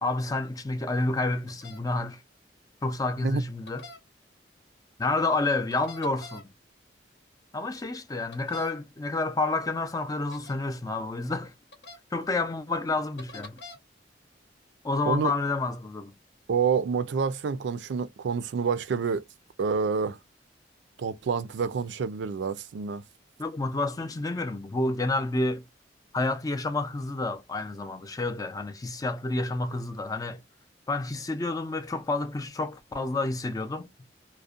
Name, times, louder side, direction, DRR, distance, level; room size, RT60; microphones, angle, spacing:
voice 1, 0.0-2.2 2.8-3.9 5.0-6.5 7.5-11.5 12.1-13.6 14.8-16.1 23.4-25.6 26.1-30.4 30.9-33.9, left 2 dB, 20° left, 0.4 m, -29 dB
sound 1, 1.5-1.8 3.7-4.0 5.7-6.4 8.3-8.7 10.3-10.6 11.7-12.0 13.2-13.8, left 2 dB, 65° left, 0.9 m, -45 dB
voice 2, 16.5-19.2 19.6-20.2 21.0-23.0, right 5 dB, 75° right, 0.4 m, -28 dB
2.5 x 2.1 x 2.3 m
head